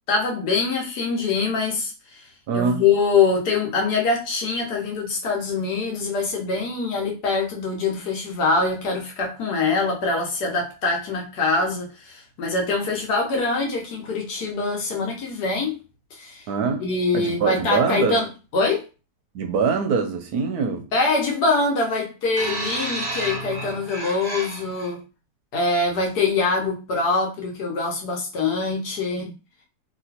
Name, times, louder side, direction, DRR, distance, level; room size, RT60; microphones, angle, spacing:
voice 1, 0.1-2.2 2.5-15.8 16.1-16.4 16.8-18.9 20.9-25.0 25.5-29.3, left 3 dB, 70° left, 1.4 m, -24 dB
voice 2, 2.5-2.8 16.5-16.9 17.1-18.2 19.3-20.9, right 5 dB, 70° right, 1.0 m, -23 dB
sound 1, 22.4-24.9 25.8-26.0, right 2 dB, 40° right, 0.6 m, -31 dB
3.0 x 2.9 x 2.8 m
omnidirectional pair, 1.8 m